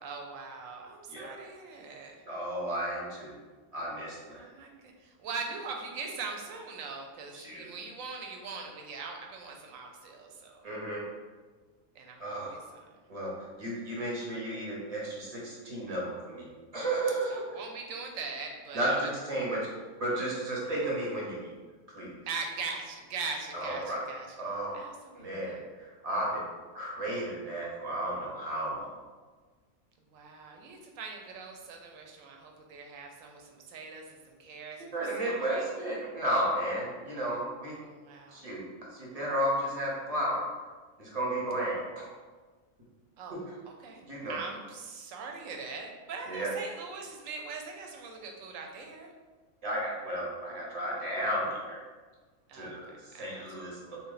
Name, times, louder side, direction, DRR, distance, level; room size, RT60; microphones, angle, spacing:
voice 1, 0.0-2.2 4.3-10.7 11.9-13.0 17.3-19.1 22.3-25.6 30.1-34.9 35.2-35.7 37.7-38.5 43.2-43.4 43.8-44.0 44.3-49.1 52.5-53.5, right 4 dB, 70° right, 2 dB, 0.9 m, -41 dB
voice 2, 2.3-3.3 3.7-4.5 7.3-7.7 10.6-11.0 12.2-12.6 13.1-17.6 18.7-19.7 20.0-21.6 21.9-22.1 23.5-24.0 24.3-24.9 25.2-26.5 26.7-29.0 34.9-37.8 38.3-40.4 41.0-42.1 43.3-43.4 44.1-44.4 46.3-46.5 49.6-51.8 52.5-54.0, right 1 dB, 35° right, -4 dB, 0.7 m, -33 dB
3.3 x 2.3 x 3.9 m, 1.4 s
omnidirectional pair, 1.5 m